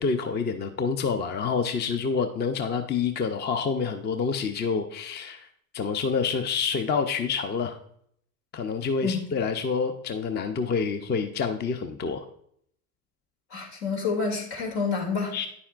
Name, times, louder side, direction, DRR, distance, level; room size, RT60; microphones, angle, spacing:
voice 1, 0.0-5.5 5.7-7.8 8.5-12.2 15.3-15.5, left 5 dB, 25° left, 8 dB, 0.5 m, -27 dB
voice 2, 13.5-15.5, left 5 dB, 70° left, 1 dB, 2.6 m, -28 dB
9.4 x 7.0 x 2.5 m, 0.68 s
hypercardioid pair, 85°, 41 cm